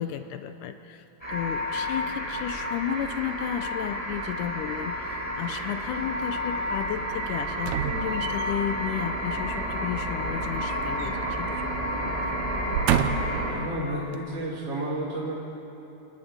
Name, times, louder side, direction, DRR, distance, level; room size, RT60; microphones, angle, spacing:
voice 1, 0.0-12.4, left 10 dB, 80° left, 9 dB, 1.9 m, -33 dB
sound 1, 1.2-13.5, equal, 10° left, 5.6 m, -30 dB
sound 2, 7.6-8.7 10.3-11.4 11.7-11.9 12.5-13.5 14.1-14.2, right 9 dB, 80° right, 1.7 m, -29 dB
voice 2, 13.4-15.3, right 1 dB, 40° right, -7 dB, 3.6 m, -31 dB
29.0 x 11.5 x 9.4 m, 3.0 s
omnidirectional pair, 4.3 m